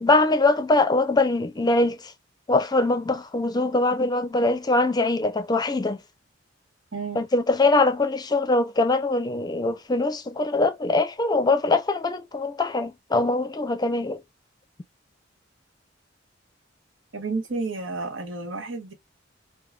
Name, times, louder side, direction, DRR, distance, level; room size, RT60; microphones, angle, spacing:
voice 1, 0.0-2.1 2.5-6.0 7.2-14.2, left 2 dB, 20° left, 0.5 m, -22 dB
voice 2, 6.9-7.2 17.1-18.9, right 3 dB, 90° right, 1.1 m, -31 dB
4.5 x 2.3 x 2.2 m
head